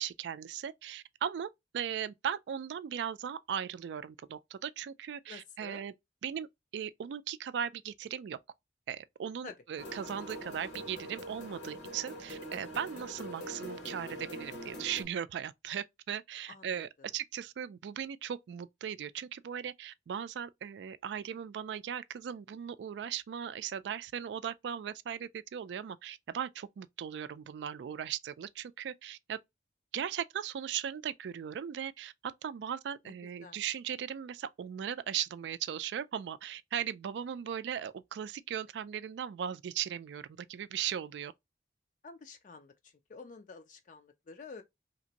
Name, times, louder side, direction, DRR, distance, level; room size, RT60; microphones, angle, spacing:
voice 1, 0.0-5.9 6.2-6.5 6.7-8.4 8.9-29.4 29.9-41.3, right 9 dB, 80° right, 0.3 m, -38 dB
voice 2, 5.3-5.9 9.4-9.6 16.5-17.1 33.1-33.2 33.4-33.6 42.0-44.6, left 4 dB, 45° left, 0.4 m, -49 dB
sound 1, 9.8-15.0, equal, 85° left, 1.2 m, -44 dB
2.9 x 2.5 x 2.8 m
head